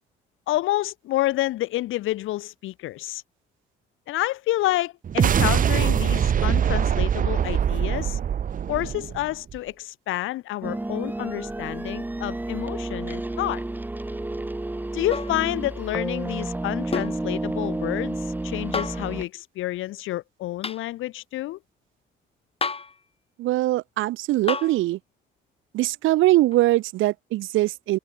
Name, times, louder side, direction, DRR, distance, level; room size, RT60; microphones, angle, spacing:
voice 1, 0.5-3.2 4.1-8.2 8.7-13.6 14.9-21.6, left 16 dB, 90° left, 2.5 m, -29 dB
sound 1, 5.0-9.6, right 8 dB, 45° right, 0.7 m, -23 dB
sound 2, 10.6-19.2, right 2 dB, 10° right, 0.8 m, -31 dB
sound 3, 15.1-15.4 16.9-17.2 18.7-19.1 20.6-20.8 22.6-23.0 24.5-24.8 26.5-26.6, left 4 dB, 30° left, 3.6 m, -29 dB
voice 2, 23.4-25.0 25.7-28.0, right 17 dB, 85° right, 0.7 m, -22 dB
cardioid pair, 90°, 20 cm